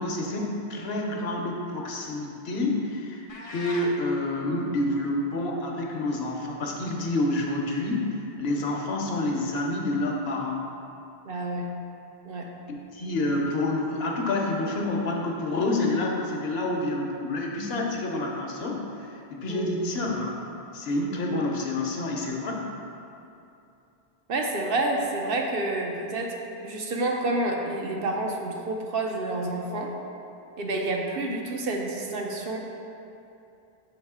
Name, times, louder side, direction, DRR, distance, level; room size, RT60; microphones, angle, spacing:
voice 1, 0.0-8.1 8.4-10.6 12.7-18.8 19.3-20.4 20.7-22.6, left 2 dB, 70° left, 0 dB, 1.0 m, -28 dB
sound 1, 3.3-3.9, left 2 dB, 40° left, 0.5 m, -38 dB
voice 2, 11.3-11.7 12.2-12.5 19.5-19.9 24.3-26.3 26.6-29.9 30.6-32.6, right 2 dB, 60° right, 0 dB, 0.9 m, -29 dB
7.1 x 3.1 x 4.8 m, 2.7 s
omnidirectional pair, 1.1 m